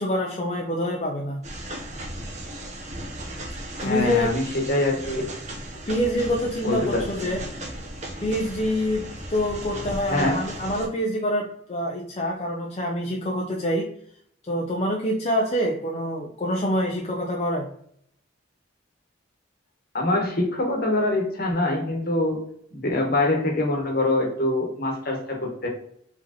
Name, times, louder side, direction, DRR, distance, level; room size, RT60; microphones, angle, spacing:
voice 1, 0.0-1.4 3.8-4.3 5.9-7.4 8.2-13.9 14.5-17.7, left 1 dB, 30° left, -1 dB, 0.5 m, -26 dB
sound 1, 1.4-10.9, right 1 dB, 35° right, 0.8 m, -36 dB
voice 2, 3.8-5.3 6.6-7.4 10.0-10.4 19.9-22.4 22.7-25.7, left 1 dB, 50° left, 1 dB, 1.2 m, -24 dB
4.6 x 3.4 x 2.9 m, 0.69 s
head